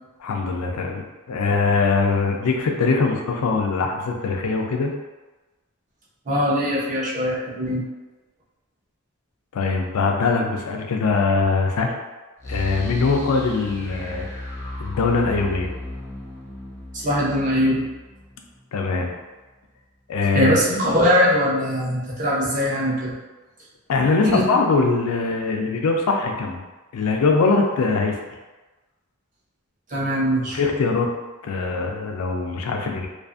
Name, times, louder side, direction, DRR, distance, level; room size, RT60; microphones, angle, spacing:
voice 1, 0.2-4.9 9.5-11.9 12.4-14.3 14.8-15.7 18.7-19.1 20.1-20.6 23.9-26.6 26.9-28.2 30.5-31.1 31.4-33.1, left 4 dB, 80° left, 2 dB, 0.4 m, -22 dB
voice 2, 6.3-7.8 16.9-17.8 20.3-23.1 24.2-24.5 29.9-30.6, equal, 35° right, -6 dB, 0.6 m, -21 dB
sound 1, 12.4-19.2, left 1 dB, 10° left, 0.3 m, -35 dB
2.5 x 2.4 x 2.4 m, 1.2 s
head